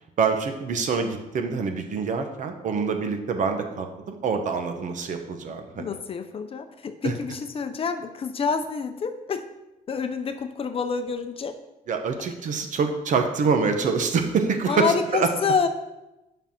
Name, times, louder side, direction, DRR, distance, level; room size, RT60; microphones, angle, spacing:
voice 1, 0.2-5.9 7.0-7.1 11.9-14.9 15.1-15.3, right 5 dB, 55° right, 5 dB, 1.1 m, -25 dB
voice 2, 5.7-9.4 9.9-11.6 14.7-15.7, left 5 dB, 35° left, 8 dB, 0.6 m, -27 dB
7.4 x 5.6 x 5.7 m, 0.98 s
cardioid pair, 145°, 16 cm